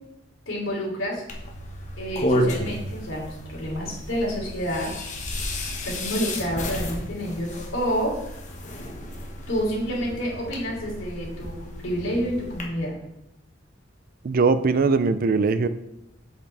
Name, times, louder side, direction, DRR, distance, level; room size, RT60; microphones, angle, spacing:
voice 1, 0.5-1.2 2.0-4.9 5.8-8.2 9.5-12.9, equal, 85° left, -3 dB, 3.2 m, -29 dB
sound 1, 1.3-12.6, equal, 40° left, 1.4 m, -32 dB
voice 2, 14.2-15.7, right 4 dB, 50° right, 13 dB, 0.4 m, -20 dB
7.9 x 6.7 x 3.4 m, 0.87 s
head